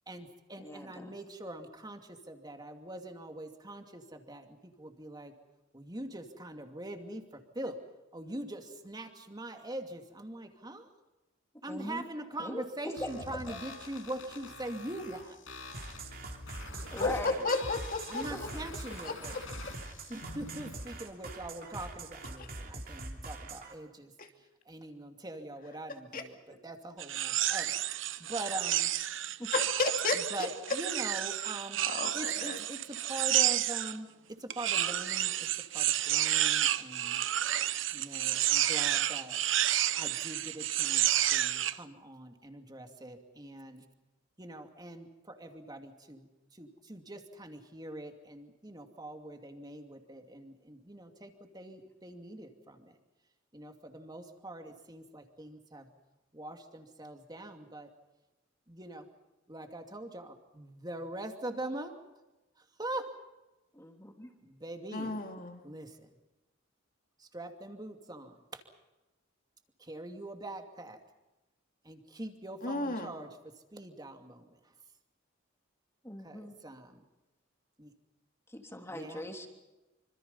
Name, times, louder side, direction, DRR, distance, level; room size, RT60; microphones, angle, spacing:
voice 1, 0.1-2.0 2.3-5.3 5.7-7.2 7.5-7.8 8.1-10.9 11.6-15.4 18.1-19.3 20.1-24.1 24.7-26.4 26.6-27.7 28.3-28.9 30.1-31.8 32.1-34.1 34.4-35.5 35.7-37.2 37.9-39.4 40.0-41.0 41.3-43.8 44.4-46.3 46.6-52.8 53.5-55.9 56.3-57.9 58.7-59.1 59.5-61.9 62.8-63.1 64.5-65.1 65.6-65.9 67.3-68.6 69.8-71.0 71.8-73.3 73.7-74.4 76.2-77.0 77.8-77.9 78.9-79.2, right 1 dB, 20° right, 5 dB, 2.6 m, -43 dB
voice 2, 0.6-1.2 11.7-12.1 12.4-13.1 13.5-13.6 16.9-17.5 18.3-18.6 26.5-26.6 29.4-29.5 63.7-64.3 65.0-65.2 76.0-76.5 78.5-79.5, left 1 dB, 15° left, 3 dB, 3.1 m, -41 dB
sound 1, 13.0-21.0, left 3 dB, 85° left, 6.7 m, -47 dB
sound 2, 15.7-23.7, right 2 dB, 50° right, 3.2 m, -43 dB
voice 3, 17.0-18.2 19.0-19.4 22.4-22.5 24.2-24.3 26.1-26.2 29.5-30.5 31.9-32.6 64.9-65.6 72.6-73.1, left 3 dB, 45° left, 4 dB, 2.8 m, -33 dB
sound 3, 27.0-34.0 34.5-41.8, right 12 dB, 75° right, 0.9 m, -30 dB
27.0 x 26.0 x 5.6 m, 1.0 s
head